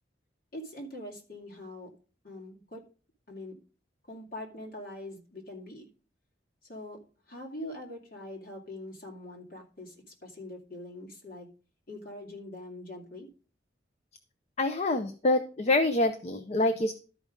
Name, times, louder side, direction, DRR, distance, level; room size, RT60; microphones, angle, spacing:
voice 1, 0.5-1.9 2.2-2.8 3.3-3.6 4.1-5.9 6.7-7.0 7.3-9.9 10.2-11.5 11.9-13.3, left 1 dB, 55° left, 0 dB, 2.5 m, -43 dB
voice 2, 14.6-16.9, left 2 dB, 35° left, 9 dB, 0.6 m, -26 dB
12.5 x 5.0 x 5.1 m, 0.38 s
head